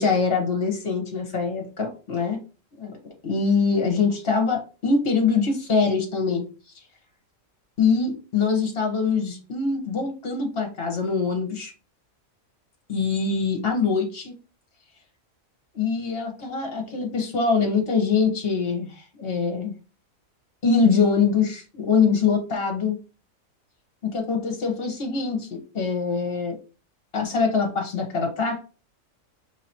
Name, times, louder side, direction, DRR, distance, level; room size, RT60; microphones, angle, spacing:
voice 1, 0.0-2.4 2.8-2.9 3.2-6.4 7.8-11.7 12.9-14.3 15.7-19.7 20.6-23.0 24.0-26.6 27.1-28.6, left 5 dB, 45° left, 3 dB, 1.3 m, -23 dB
4.8 x 3.4 x 2.9 m, 0.35 s
omnidirectional pair, 1.4 m